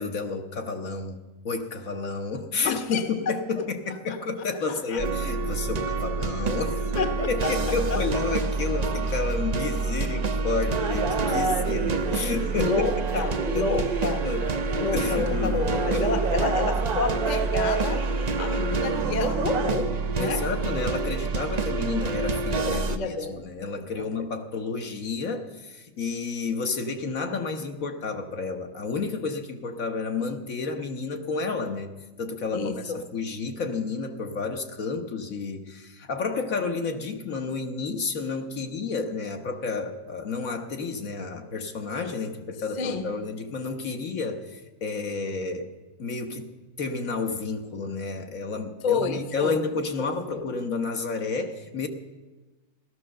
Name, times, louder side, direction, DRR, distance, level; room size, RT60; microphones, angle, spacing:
voice 1, 0.0-6.9 7.3-13.3 13.5-13.6 14.2-14.4 14.9-16.3 20.2-31.9 32.2-45.7 46.0-46.5 46.8-51.9, left 4 dB, 60° left, 5 dB, 1.5 m, -31 dB
voice 2, 2.6-3.1 4.1-4.2 4.7-5.0 6.9-8.0 11.5-11.8 12.5-14.3 14.7-18.0 18.4-20.5 22.7-23.4 23.9-24.0 32.5-33.0 42.8-43.1 48.8-49.7 50.0-50.5, left 4 dB, 30° left, 8 dB, 1.0 m, -29 dB
sound 1, 5.0-23.0, right 3 dB, 40° right, 0.5 m, -28 dB
sound 2, 10.7-19.8, right 5 dB, 70° right, 1.6 m, -31 dB
16.5 x 13.0 x 6.6 m, 1.2 s
omnidirectional pair, 1.7 m